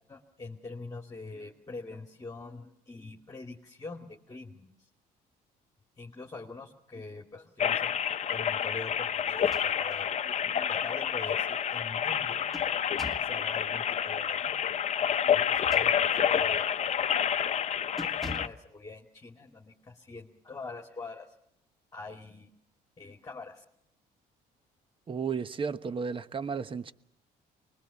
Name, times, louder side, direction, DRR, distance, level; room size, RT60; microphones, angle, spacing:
voice 1, 0.1-4.9 6.0-8.0 8.3-12.5 13.2-14.7 15.2-17.1 17.7-21.3 21.9-22.5 23.0-23.6, left 3 dB, 20° left, 2.4 m, -44 dB
sound 1, 7.6-18.5, left 8 dB, 40° left, 0.9 m, -28 dB
sound 2, 9.3-10.1 10.5-10.6 12.1-13.4 15.4-16.3 16.8-17.1 17.4-17.6 18.0-18.7, left 2 dB, ahead, 1.8 m, -44 dB
voice 2, 25.1-26.9, right 6 dB, 30° right, 1.1 m, -33 dB
24.5 x 21.5 x 7.2 m
cardioid pair, 110°, 17 cm